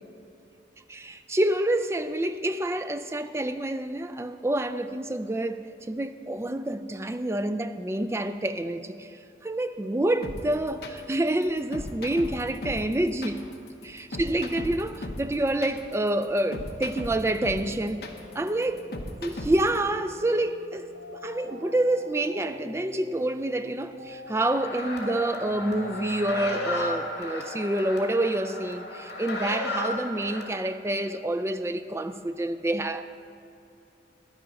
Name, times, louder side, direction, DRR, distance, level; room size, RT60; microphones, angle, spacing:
voice 1, 0.9-9.2 9.4-13.4 13.8-18.0 18.4-18.8 19.2-20.9 21.2-33.0, right 1 dB, 15° right, 0.3 m, -28 dB
sound 1, 10.2-19.8, left 1 dB, 60° left, 1.0 m, -37 dB
sound 2, 17.5-27.0, left 2 dB, 60° right, 1.5 m, -46 dB
sound 3, 24.5-30.4, left 2 dB, 75° left, 2.3 m, -34 dB
10.5 x 10.5 x 5.1 m
head